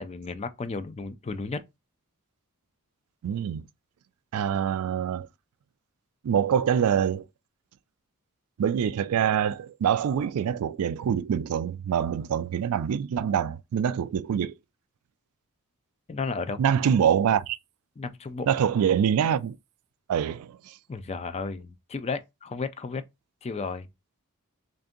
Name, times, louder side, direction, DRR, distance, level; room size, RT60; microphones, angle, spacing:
voice 1, 0.0-1.6 16.1-16.6 18.0-18.5 20.9-23.0 23.4-23.9, left 4 dB, 30° left, 0.4 m, -33 dB
voice 2, 3.2-3.6 4.3-5.3 6.2-7.3 8.6-14.5 16.6-17.6 18.5-19.6 20.1-20.8, right 8 dB, 70° right, 0.3 m, -25 dB
3.4 x 2.6 x 3.7 m
head